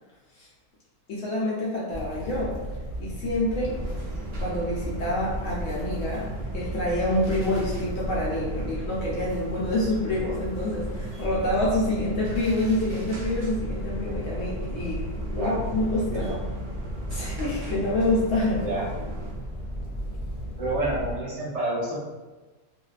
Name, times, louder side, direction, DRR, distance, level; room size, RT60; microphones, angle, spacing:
voice 1, 1.1-2.6 3.0-3.8 4.4-6.3 6.5-15.0 15.3-16.3 17.1-18.6, left 1 dB, 65° left, -6 dB, 0.8 m, -27 dB
sound 1, 1.9-21.2, equal, 90° left, 0.4 m, -35 dB
sound 2, 3.6-19.3, right 1 dB, 80° right, 0.5 m, -38 dB
voice 2, 15.8-16.3 18.6-18.9 20.6-22.0, right 1 dB, 55° right, -7 dB, 0.9 m, -29 dB
2.5 x 2.2 x 2.4 m, 1.2 s
omnidirectional pair, 1.7 m